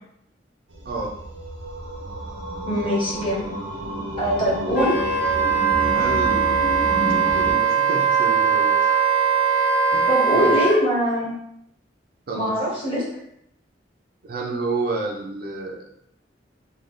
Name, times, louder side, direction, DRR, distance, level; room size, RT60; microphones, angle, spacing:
sound 1, 0.7-7.5, right 1 dB, 90° right, 0.7 m, -31 dB
voice 1, 0.8-1.2 5.8-6.5 7.3-9.0 9.9-10.6 12.3-12.7 13.1-13.2 14.2-15.8, right 3 dB, 50° right, 0 dB, 0.5 m, -30 dB
voice 2, 2.7-3.5 4.2-5.0 10.1-11.3 12.3-13.1, equal, 30° left, -6 dB, 1.4 m, -22 dB
Wind instrument woodwind instrument, 4.7-10.8, right 6 dB, 55° left, 1.3 m, -20 dB
3.3 x 2.3 x 3.8 m, 0.74 s
head